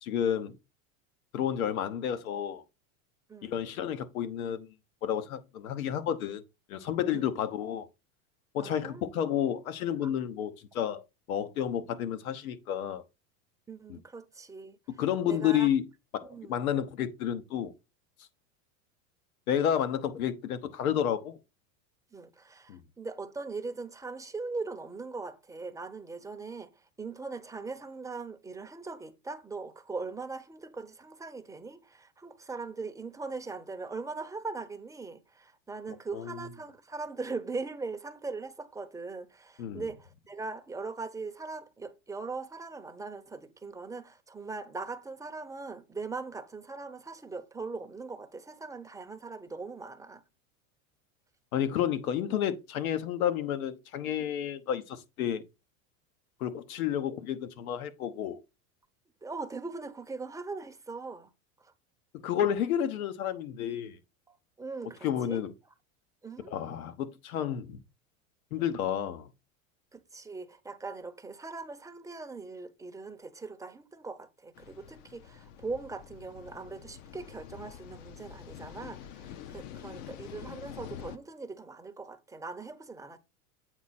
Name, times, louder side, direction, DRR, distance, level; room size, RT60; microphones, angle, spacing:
voice 1, 0.0-0.6 1.3-2.6 3.4-4.7 5.0-6.4 6.7-7.9 8.5-11.0 11.3-13.0 13.9-14.0 15.0-15.8 16.1-17.7 19.5-21.4 22.7-22.8 36.1-36.4 39.6-39.8 51.5-55.4 56.4-58.4 62.1-64.0 65.0-65.5 66.5-67.8 68.5-69.3, left 9 dB, 80° left, 1.1 m, -31 dB
voice 2, 3.3-3.6 7.1-7.2 8.6-9.0 10.0-10.1 13.7-14.8 15.3-15.7 16.2-16.7 22.1-50.2 59.2-61.3 61.6-61.7 64.3-65.4 66.2-66.6 68.6-68.8 69.9-83.2, right 3 dB, 10° right, 0.7 m, -40 dB
sound 1, 74.5-81.2, left 10 dB, 60° left, 0.8 m, -46 dB
8.1 x 4.3 x 4.1 m
hypercardioid pair, 105°, 42 cm